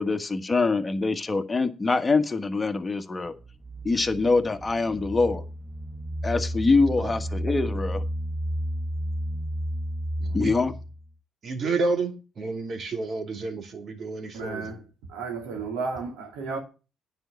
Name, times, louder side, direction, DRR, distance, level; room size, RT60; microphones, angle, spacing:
voice 1, 0.0-3.3 3.8-5.4 6.2-8.0 10.3-10.7, left 3 dB, 25° left, 1.5 m, -24 dB
sound 1, 3.2-11.1, equal, 15° right, 1.2 m, -32 dB
voice 2, 10.2-10.5 11.4-14.7, right 3 dB, 50° right, 2.6 m, -30 dB
voice 3, 14.3-14.8 15.1-16.6, right 4 dB, 85° right, 3.0 m, -33 dB
9.8 x 5.4 x 7.0 m
hypercardioid pair, 55°, 0 cm